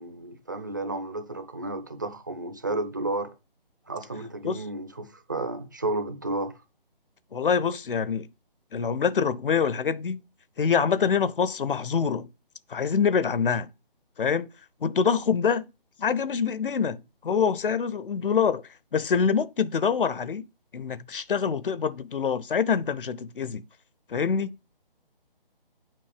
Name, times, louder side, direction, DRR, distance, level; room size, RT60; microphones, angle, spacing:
voice 1, 0.0-3.3 3.9-6.5, right 2 dB, 20° right, 0.5 m, -32 dB
voice 2, 7.3-8.3 8.7-10.2 10.6-12.3 12.7-13.7 14.2-14.5 14.8-15.7 16.0-18.6 18.9-20.5 20.7-23.6 24.1-24.6, left 6 dB, 65° left, 0.7 m, -25 dB
7.6 x 5.3 x 4.9 m
figure-of-eight pair, 155°, 29 cm